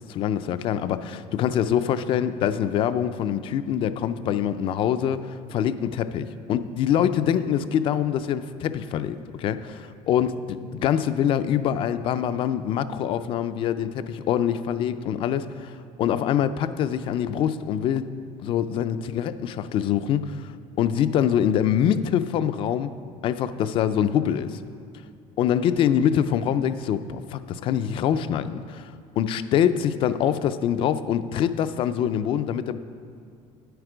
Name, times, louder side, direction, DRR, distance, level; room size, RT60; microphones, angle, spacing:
voice 1, 0.0-18.0 18.4-22.9 23.2-24.6 25.4-32.8, left 9 dB, 40° left, 12 dB, 0.4 m, -24 dB
9.7 x 7.9 x 5.0 m, 2.5 s
cardioid pair, 165°, 14 cm